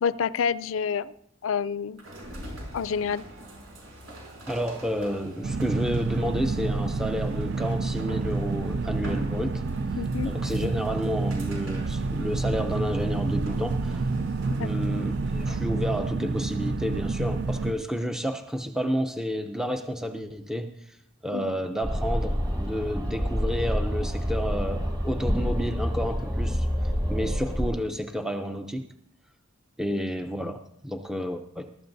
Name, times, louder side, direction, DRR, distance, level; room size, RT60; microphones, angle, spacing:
voice 1, 0.0-1.1 1.4-2.0 2.7-3.2 10.0-10.3 14.5-14.7 21.3-21.5, left 6 dB, 75° left, 17 dB, 0.4 m, -28 dB
sound 1, 2.0-15.7, equal, 85° right, 5.3 m, -44 dB
voice 2, 4.5-9.6 10.2-14.1 14.6-21.0 21.2-28.9 29.8-31.7, equal, 5° right, 6 dB, 0.5 m, -30 dB
sound 2, 5.4-17.7, right 3 dB, 55° right, 0.5 m, -29 dB
sound 3, 21.8-27.7, equal, 20° right, 2.1 m, -28 dB
21.5 x 13.0 x 2.7 m, 0.77 s
head